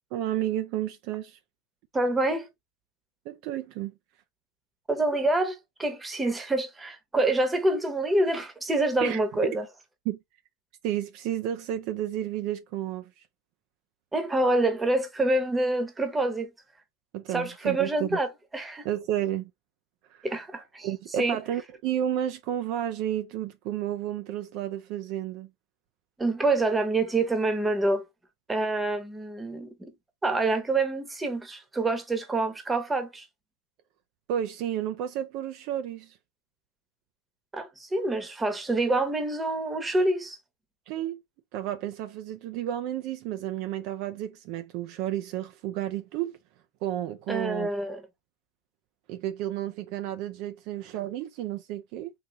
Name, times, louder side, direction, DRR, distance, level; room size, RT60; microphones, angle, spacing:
voice 1, 0.1-1.4 3.3-3.9 9.0-9.2 10.1-10.2 10.8-13.2 17.1-18.2 18.8-19.5 20.1-20.3 20.8-25.5 34.3-36.2 40.9-41.2 41.5-46.4 46.8-47.7 49.1-52.1, right 11 dB, 55° right, 0.5 m, -31 dB
voice 2, 1.9-2.5 4.9-9.6 14.1-16.5 17.3-18.8 20.2-20.9 21.2-21.4 26.2-28.1 28.5-29.9 30.2-33.3 37.5-40.4 47.3-48.0, right 2 dB, 10° right, 1.0 m, -26 dB
3.9 x 2.7 x 3.0 m
supercardioid pair, 125°, 0 cm